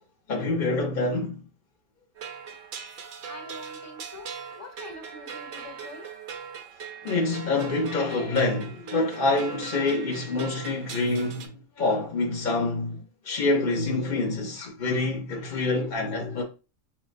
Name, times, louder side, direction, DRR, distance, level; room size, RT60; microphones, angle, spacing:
voice 1, 0.3-1.4 7.0-11.5 11.8-16.4, left 2 dB, 45° left, 0.7 m, -26 dB
sound 1, 2.2-11.5, right 6 dB, 70° right, 1.0 m, -40 dB
voice 2, 3.3-6.1, left 2 dB, 15° left, 0.8 m, -45 dB
5.0 x 2.1 x 2.5 m
omnidirectional pair, 1.5 m